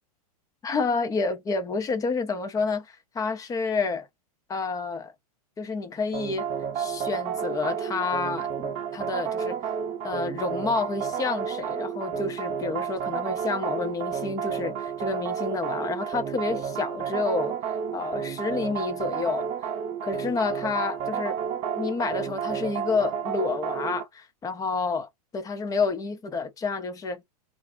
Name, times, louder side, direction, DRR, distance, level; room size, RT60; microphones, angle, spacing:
voice 1, 0.6-4.1 4.5-5.1 5.6-6.5 6.8-9.6 10.0-17.6 17.9-19.5 20.0-21.4 21.8-27.2, left 4 dB, 15° left, 0.6 m, -29 dB
sound 1, 6.1-24.0, right 7 dB, 30° right, 0.7 m, -31 dB
2.5 x 2.0 x 3.5 m
hypercardioid pair, 120°, 20 cm